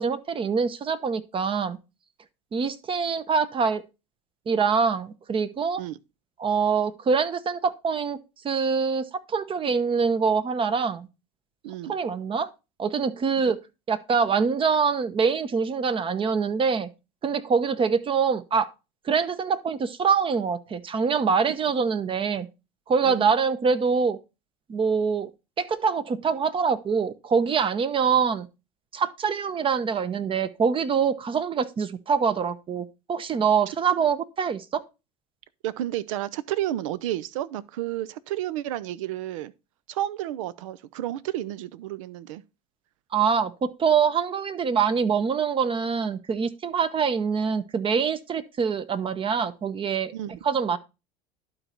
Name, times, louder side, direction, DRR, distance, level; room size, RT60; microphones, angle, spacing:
voice 1, 0.0-1.8 2.5-3.8 4.5-5.8 6.4-8.2 8.4-11.1 11.9-12.5 12.8-13.6 13.9-16.9 17.2-18.7 19.1-22.5 22.9-24.2 24.7-25.3 25.6-28.5 28.9-34.8 43.1-50.1 50.4-50.8, right 6 dB, 30° right, 0.8 m, -24 dB
voice 2, 11.6-11.9 23.0-23.3 35.6-39.5 39.9-42.4 50.1-50.3, right 13 dB, 75° right, 0.6 m, -31 dB
11.5 x 4.1 x 4.4 m
hypercardioid pair, 80°, 17 cm